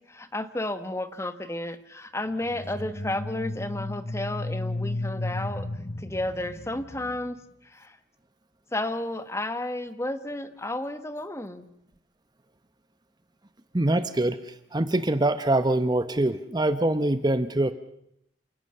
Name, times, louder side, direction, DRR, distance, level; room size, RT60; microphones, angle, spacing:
voice 1, 0.0-5.7 6.0-7.4 7.7-8.0 8.7-11.7, left 1 dB, 15° left, 11 dB, 1.2 m, -32 dB
sound 1, 2.4-7.3, left 2 dB, 30° left, 0.8 m, -34 dB
voice 2, 13.7-14.4 14.7-17.7, right 1 dB, 25° right, 12 dB, 0.9 m, -24 dB
28.5 x 17.5 x 6.8 m, 0.77 s
head